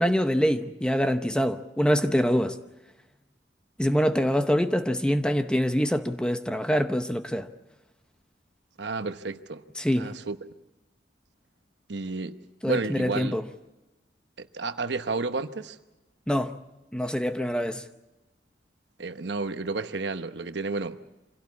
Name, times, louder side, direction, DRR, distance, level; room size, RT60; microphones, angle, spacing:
voice 1, 0.0-2.6 3.8-7.5 9.8-10.1 12.6-13.5 16.3-16.6 16.9-17.8, equal, 5° left, 0.8 m, -25 dB
voice 2, 8.8-9.6 9.9-10.4 11.9-12.4 12.7-13.4 14.4-15.8 19.0-21.0, right 3 dB, 70° right, 1.0 m, -31 dB
26.0 x 17.0 x 8.4 m
head